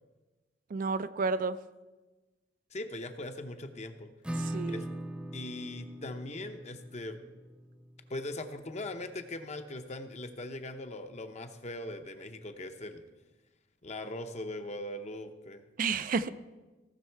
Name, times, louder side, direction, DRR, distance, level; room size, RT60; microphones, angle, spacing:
voice 1, 0.7-1.6 4.4-4.8 15.8-16.3, right 4 dB, 45° right, 13 dB, 0.4 m, -31 dB
voice 2, 2.7-4.1 4.6-4.8 5.3-7.2 8.1-13.0 13.8-15.6, left 1 dB, 35° left, 7 dB, 0.8 m, -40 dB
Acoustic guitar / Strum, 4.2-9.7, right 1 dB, 5° right, 0.8 m, -41 dB
17.0 x 6.4 x 4.6 m, 1.2 s
head